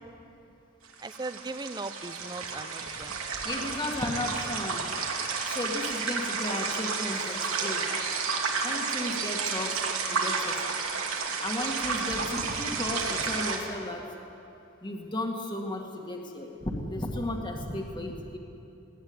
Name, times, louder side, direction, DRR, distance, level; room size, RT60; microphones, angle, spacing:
sound 1, 0.8-13.6, right 5 dB, 85° right, 2.7 m, -31 dB
voice 1, 1.0-3.1, right 3 dB, 20° right, 12 dB, 0.8 m, -38 dB
voice 2, 3.4-4.9 5.4-7.9 8.6-9.8 10.1-10.8 11.4-14.1 14.8-18.4, left 1 dB, 20° left, 1 dB, 2.1 m, -34 dB
21.0 x 17.5 x 9.7 m, 2.8 s
head